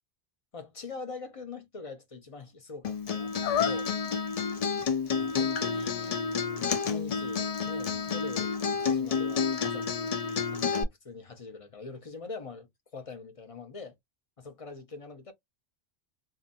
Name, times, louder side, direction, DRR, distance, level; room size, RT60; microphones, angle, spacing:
voice 1, 0.5-3.9 5.2-6.3 6.8-8.5 8.8-14.0 14.4-15.3, left 4 dB, 35° left, 0.7 m, -43 dB
Acoustic guitar, 2.8-10.8, left 5 dB, 55° left, 0.4 m, -30 dB
sound 1, 3.4-4.1 4.7-4.9 5.2-8.8, left 10 dB, 85° left, 0.9 m, -35 dB
2.7 x 2.5 x 2.5 m
omnidirectional pair, 1.2 m